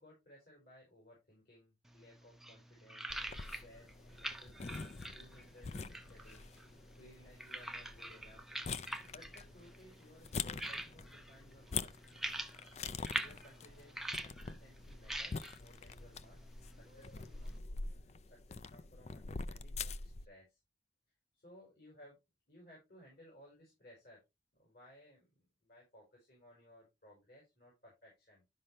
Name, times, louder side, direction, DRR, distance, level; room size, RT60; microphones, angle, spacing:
voice 1, 0.0-3.1 3.3-8.4 8.7-11.9 12.8-16.5 16.8-17.6 17.9-20.6 21.3-22.2 22.5-24.2 24.5-28.4, equal, 55° left, -2 dB, 5.0 m, -61 dB
sound 1, 1.9-17.6, right 1 dB, ahead, 0.7 m, -46 dB
sound 2, 3.1-20.3, left 4 dB, 35° left, 0.4 m, -45 dB
sound 3, 11.3-12.2 12.9-14.7 16.7-18.2, left 2 dB, 85° left, 4.2 m, -68 dB
12.0 x 5.5 x 3.2 m, 0.22 s
head